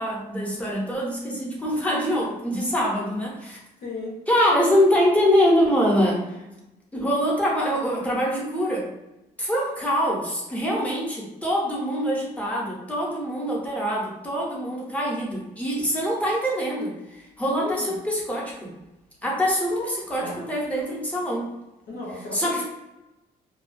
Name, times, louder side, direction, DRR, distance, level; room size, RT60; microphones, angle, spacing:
voice 1, 0.0-3.6 4.3-6.4 6.9-8.9 9.4-18.7 19.2-19.7 20.1-21.5 22.3-22.6, equal, 10° left, -4 dB, 0.6 m, -24 dB
voice 2, 3.8-4.2 17.5-18.0 19.6-20.5 21.9-22.6, left 2 dB, 90° left, -3 dB, 0.8 m, -34 dB
2.4 x 2.1 x 2.4 m, 0.97 s
cardioid pair, 160°, 16 cm